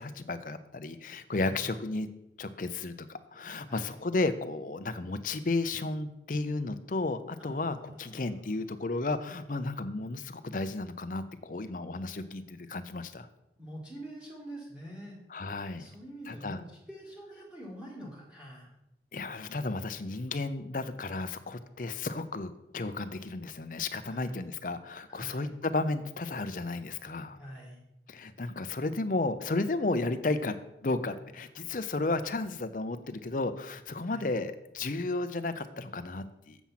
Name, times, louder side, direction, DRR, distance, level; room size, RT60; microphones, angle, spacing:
voice 1, 0.0-2.1 2.4-13.3 15.3-15.9 16.3-16.6 19.1-27.4 28.1-30.6 30.8-36.6, left 3 dB, 45° left, 10 dB, 0.6 m, -33 dB
voice 2, 7.4-8.9 13.6-15.2 15.8-16.6 16.9-18.7 24.0-24.4 25.1-25.5 27.4-27.8 34.0-34.3, right 1 dB, 5° right, -5 dB, 2.1 m, -46 dB
7.3 x 7.1 x 5.7 m, 0.88 s
head